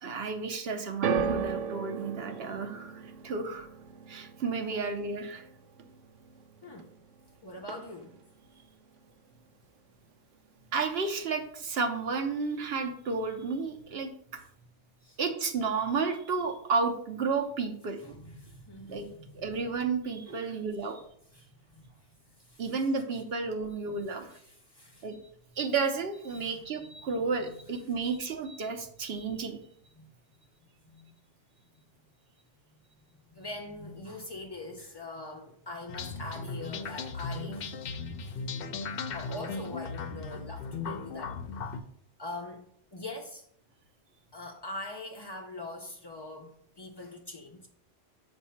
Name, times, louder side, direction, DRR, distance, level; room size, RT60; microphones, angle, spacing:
voice 1, 0.0-3.7 4.1-5.4 10.7-14.4 15.2-18.1 18.9-19.1 19.3-21.0 22.6-24.3 25.0-25.2 25.6-29.6, right 4 dB, 60° right, 0.9 m, -32 dB
sound 1, 1.0-7.3 7.6-8.2 9.0-9.1, right 6 dB, 85° right, 0.9 m, -36 dB
voice 2, 7.4-8.2 15.0-15.2 18.0-19.5 20.3-20.6 21.3-22.1 22.4-22.9 24.3-25.1 26.3-26.6 27.4-27.5 30.0-30.1 30.8-31.1 33.3-38.4 39.1-41.7 42.2-42.7 42.9-43.4 44.3-47.7, left 2 dB, 40° left, 0.3 m, -43 dB
sound 2, 35.9-41.8, left 4 dB, 60° left, 0.7 m, -37 dB
7.2 x 2.6 x 5.6 m
omnidirectional pair, 1.2 m